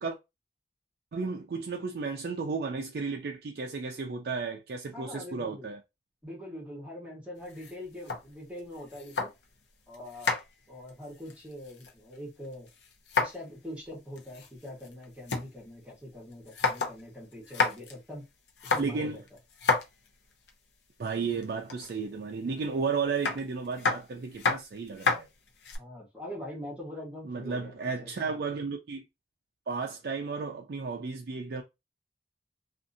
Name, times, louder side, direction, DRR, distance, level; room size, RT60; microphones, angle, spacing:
voice 1, 1.1-5.8 18.8-19.2 21.0-25.3 27.2-29.1 29.7-31.6, right 4 dB, 60° right, 0.4 m, -33 dB
voice 2, 4.9-5.7 6.2-9.3 9.9-10.4 10.7-12.7 13.2-18.2 18.7-19.2 25.8-28.1, left 1 dB, 5° right, 1.0 m, -43 dB
sound 1, 7.4-9.6 9.9-12.2 12.4-13.5 13.8-13.9 14.2-15.5 15.9-16.0 16.3-17.0 17.3-17.9 18.5-20.5 21.4-22.0 23.2-25.8, left 4 dB, 80° left, 0.6 m, -31 dB
2.6 x 2.4 x 2.5 m
head